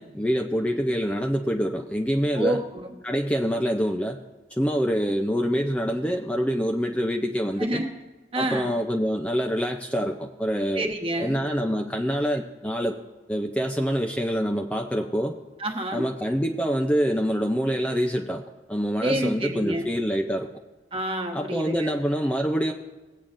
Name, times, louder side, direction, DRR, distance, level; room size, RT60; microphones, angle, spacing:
voice 1, 0.0-2.6 3.0-4.2 4.6-7.8 8.4-10.9 11.2-13.0 13.3-15.4 15.9-18.4 18.7-20.5 21.3-22.7, equal, 5° left, 2 dB, 0.4 m, -26 dB
voice 2, 2.3-2.9 7.6-7.9 8.3-8.7 10.7-11.4 15.6-16.1 19.0-19.9 20.9-21.9, right 1 dB, 30° right, 3 dB, 1.2 m, -28 dB
18.5 x 8.5 x 2.6 m, 1.2 s
head